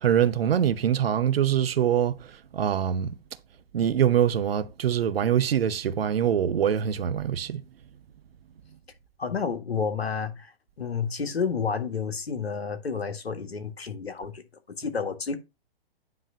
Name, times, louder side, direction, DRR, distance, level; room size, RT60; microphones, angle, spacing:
voice 1, 0.0-2.2 2.5-3.1 3.7-7.6, right 9 dB, 70° right, 0.8 m, -24 dB
voice 2, 9.2-10.5 10.8-14.4 14.8-15.4, left 5 dB, 85° left, 1.6 m, -30 dB
9.5 x 3.3 x 5.4 m
figure-of-eight pair, 120°, 30 cm